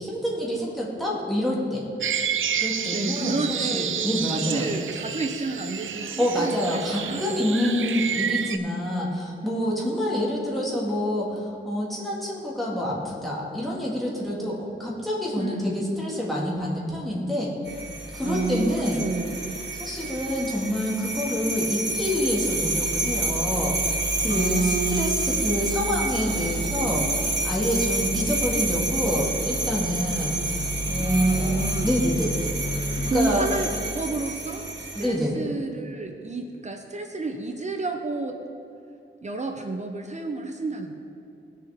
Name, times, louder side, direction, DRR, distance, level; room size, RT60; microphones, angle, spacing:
voice 1, 0.0-1.9 2.5-4.7 6.2-17.5 18.1-19.0 19.8-32.5 33.0-33.5 35.0-35.4, left 1 dB, ahead, -6 dB, 2.1 m, -27 dB
sound 1, 2.0-8.6, right 8 dB, 75° right, 0.5 m, -30 dB
voice 2, 2.9-7.5 15.4-15.8 18.2-19.6 24.3-25.4 31.0-31.9 33.1-38.4 39.2-40.9, right 3 dB, 35° right, 4 dB, 0.7 m, -30 dB
sound 2, 17.7-35.1, right 2 dB, 55° right, 1.5 m, -29 dB
sound 3, 25.4-33.1, left 2 dB, 50° left, 0.8 m, -36 dB
19.5 x 6.7 x 3.6 m, 2.8 s
wide cardioid pair, 165°, 21 cm